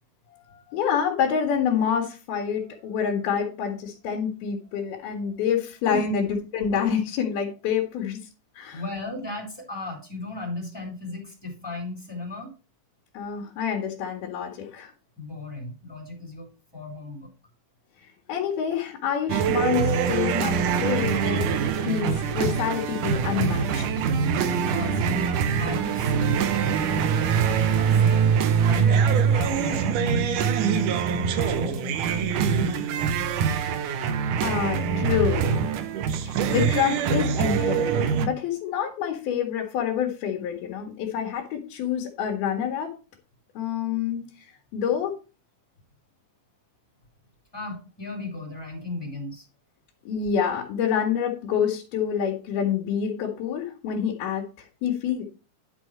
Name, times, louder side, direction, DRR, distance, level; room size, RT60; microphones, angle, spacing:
voice 1, 0.3-6.3 6.5-8.2 8.6-8.8 13.1-14.9 18.3-23.9 33.9-35.7 36.2-42.9 43.6-44.3 44.7-45.1 50.1-55.2, left 8 dB, 85° left, -1 dB, 3.5 m, -27 dB
voice 2, 8.7-12.5 15.2-17.3 24.6-28.3 28.6-33.2 47.5-49.5, left 2 dB, 5° left, 0 dB, 3.2 m, -35 dB
sound 1, 19.3-38.3, right 7 dB, 70° right, 2.2 m, -24 dB
sound 2, 20.7-29.8, right 1 dB, 15° right, 3.3 m, -40 dB
11.0 x 6.3 x 4.5 m, 0.32 s
omnidirectional pair, 4.3 m